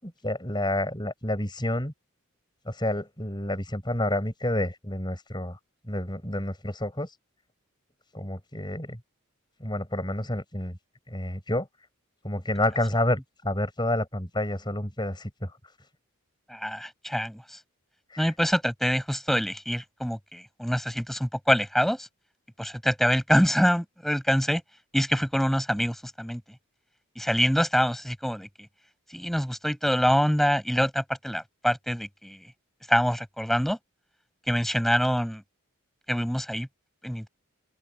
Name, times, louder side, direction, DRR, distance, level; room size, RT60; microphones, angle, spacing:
voice 1, 0.0-1.9 2.7-5.6 5.9-7.1 8.1-9.0 9.6-10.8 11.1-11.7 12.2-15.5 18.1-18.3, left 1 dB, 20° left, 6.2 m, -29 dB
voice 2, 16.5-17.6 18.2-22.1 22.6-24.6 24.9-26.4 27.1-28.5 29.1-32.4 32.9-33.8 34.5-35.4 36.1-36.7 37.0-37.3, equal, ahead, 6.8 m, -25 dB
open air
head